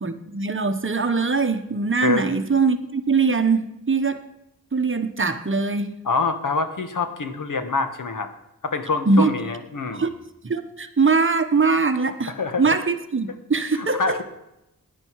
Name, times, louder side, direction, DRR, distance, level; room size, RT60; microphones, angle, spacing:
voice 1, 0.0-4.2 4.7-5.9 9.1-9.3 9.9-10.1 10.4-12.3 12.6-14.2, right 4 dB, 35° right, 8 dB, 1.1 m, -22 dB
voice 2, 6.0-8.3 8.6-10.1 12.3-12.7 13.7-14.2, left 4 dB, 60° left, 8 dB, 1.4 m, -25 dB
16.0 x 10.5 x 4.7 m, 0.89 s
wide cardioid pair, 100°, 35 cm